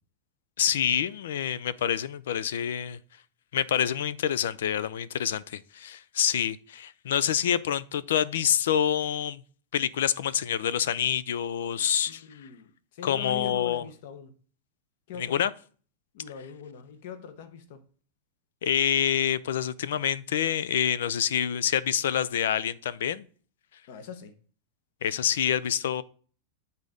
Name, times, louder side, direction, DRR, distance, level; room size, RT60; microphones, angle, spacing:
voice 1, 0.6-3.0 3.5-9.4 9.7-12.2 13.0-13.8 15.2-15.5 18.6-23.3 25.0-26.0, left 9 dB, 90° left, 0.5 m, -27 dB
voice 2, 12.1-14.3 15.1-15.4 16.1-17.8 23.9-24.3, left 7 dB, 55° left, 0.9 m, -42 dB
8.3 x 4.0 x 5.0 m
supercardioid pair, 175°, 0 cm